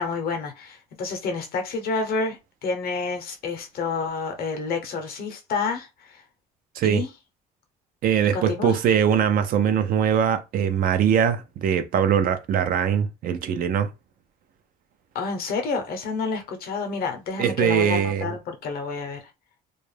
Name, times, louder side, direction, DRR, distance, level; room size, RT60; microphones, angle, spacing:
voice 1, 0.0-6.2 6.8-7.1 8.3-8.8 15.1-19.2, left 4 dB, 60° left, 0.7 m, -29 dB
voice 2, 8.0-13.9 17.4-18.4, right 8 dB, 60° right, 0.5 m, -22 dB
2.3 x 2.1 x 3.2 m
cardioid pair, 110°, 17 cm